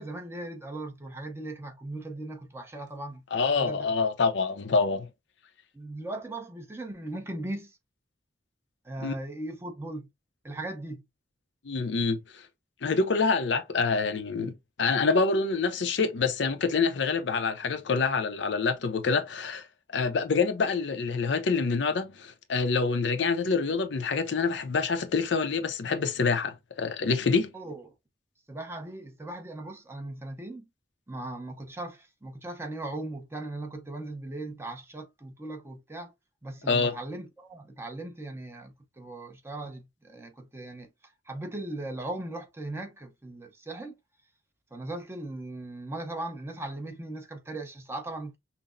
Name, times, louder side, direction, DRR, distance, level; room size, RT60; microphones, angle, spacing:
voice 1, 0.0-3.2 3.6-3.9 5.7-7.7 8.8-10.1 10.4-11.0 27.5-27.9 28.5-30.7 31.1-36.1 36.4-40.9 41.3-43.9 44.7-48.4, right 2 dB, 15° right, 0.7 m, -38 dB
voice 2, 3.3-5.1 9.0-9.1 11.6-12.4 12.8-27.5 36.7-36.9, left 4 dB, 75° left, 0.5 m, -26 dB
5.6 x 2.0 x 2.5 m
head